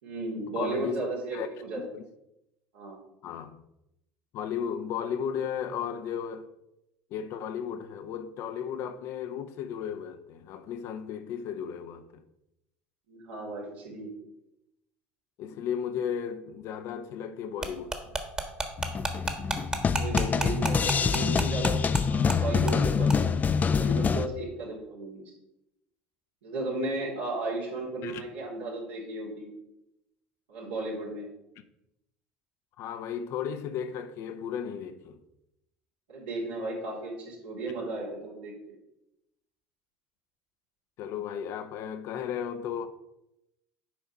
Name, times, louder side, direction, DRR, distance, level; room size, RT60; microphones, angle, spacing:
voice 1, 0.0-1.8 2.7-3.0 13.1-14.2 19.9-23.3 23.7-25.3 26.4-29.5 30.5-31.3 36.1-38.8, right 2 dB, 85° right, 2.8 m, -35 dB
voice 2, 0.6-1.0 1.3-1.5 1.8-2.0 3.2-3.6 4.3-6.5 7.1-12.2 15.4-18.1 28.0-28.2 32.8-35.2 41.0-42.9, left 8 dB, 60° left, 0.8 m, -35 dB
sound 1, 17.6-22.0 22.3-22.4 22.7-22.8 23.1-23.2, right 2 dB, 15° right, 1.3 m, -31 dB
sound 2, 18.8-24.3, left 5 dB, 30° left, 0.5 m, -26 dB
7.5 x 4.6 x 5.5 m
hypercardioid pair, 80°, 5 cm